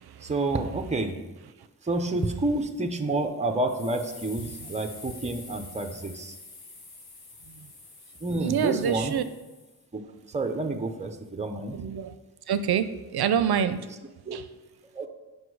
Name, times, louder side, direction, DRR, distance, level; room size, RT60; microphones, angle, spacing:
voice 1, 0.2-1.2 1.8-6.4 8.2-9.1 9.9-10.0 10.3-11.8 14.3-14.4 14.9-15.1, right 2 dB, 20° right, 6 dB, 0.6 m, -29 dB
sound 1, 3.7-9.8, left 3 dB, 75° left, 1.3 m, -47 dB
voice 2, 8.4-9.2 11.7-12.2 12.5-13.8 14.3-14.4, right 8 dB, 80° right, 11 dB, 0.5 m, -26 dB
8.2 x 5.2 x 4.7 m, 1.1 s
wide cardioid pair, 150°, 38 cm